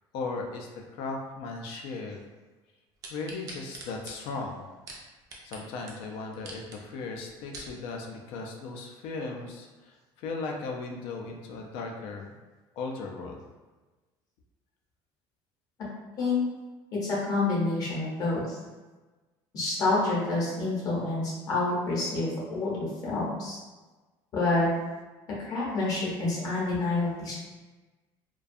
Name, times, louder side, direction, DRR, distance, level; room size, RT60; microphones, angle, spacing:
voice 1, 0.1-2.2 3.1-4.6 5.4-12.3 12.7-13.4, left 3 dB, 65° left, 1 dB, 0.4 m, -37 dB
sound 1, 3.0-5.6 5.9-6.0 6.3-6.8 7.3-7.7 8.3-8.4, right 2 dB, 35° right, 0.4 m, -43 dB
voice 2, 17.0-18.6 19.5-23.6 24.3-24.7 25.5-27.3, left 3 dB, 35° left, -5 dB, 0.7 m, -28 dB
2.3 x 2.2 x 2.5 m, 1.2 s
cardioid pair, 175°, 10 cm